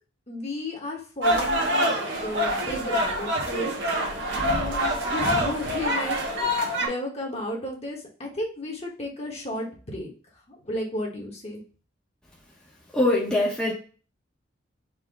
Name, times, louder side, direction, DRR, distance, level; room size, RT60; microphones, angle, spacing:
voice 1, 0.3-1.9 2.2-3.7 4.4-10.1 10.5-11.6, left 1 dB, 35° left, -1 dB, 1.3 m, -33 dB
sound 1, 1.2-6.9, equal, 65° right, 1.4 m, -25 dB
voice 2, 12.9-13.7, left 1 dB, 5° left, -5 dB, 0.9 m, -22 dB
4.4 x 2.8 x 3.7 m, 0.37 s
head